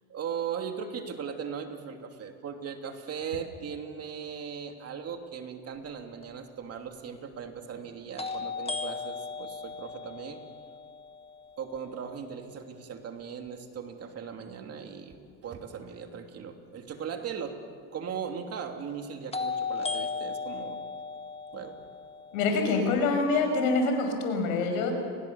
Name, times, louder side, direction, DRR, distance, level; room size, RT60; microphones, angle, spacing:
voice 1, 0.1-10.4 11.6-17.6 17.9-20.8 21.5-21.8, right 7 dB, 40° right, 4 dB, 2.9 m, -38 dB
sound 1, 6.2-6.3 8.2-12.1 19.3-23.3, left 4 dB, 15° left, 1.8 m, -36 dB
voice 2, 22.3-24.9, left 3 dB, 85° left, 5 dB, 5.7 m, -26 dB
30.0 x 21.5 x 7.0 m, 2.1 s
supercardioid pair, 120°, 39 cm